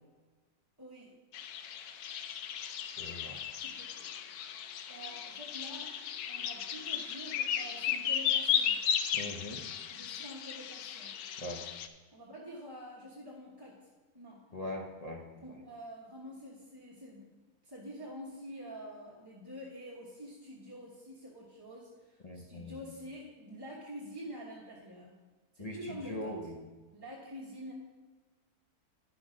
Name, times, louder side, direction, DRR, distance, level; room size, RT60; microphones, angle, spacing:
voice 1, 0.8-1.2 3.6-4.1 4.9-6.0 6.3-8.8 9.9-11.1 12.1-13.8 14.1-14.4 15.4-17.3 17.6-25.1 25.5-26.3 26.9-27.7, equal, 15° right, -5 dB, 1.0 m, -47 dB
sound 1, 1.3-11.9, left 8 dB, 80° left, 1.1 m, -35 dB
voice 2, 2.9-3.4 9.1-9.6 11.4-11.7 14.5-15.6 22.2-22.8 25.6-26.6, left 1 dB, 35° left, 1 dB, 0.7 m, -41 dB
10.5 x 6.0 x 5.1 m, 1.3 s
omnidirectional pair, 1.6 m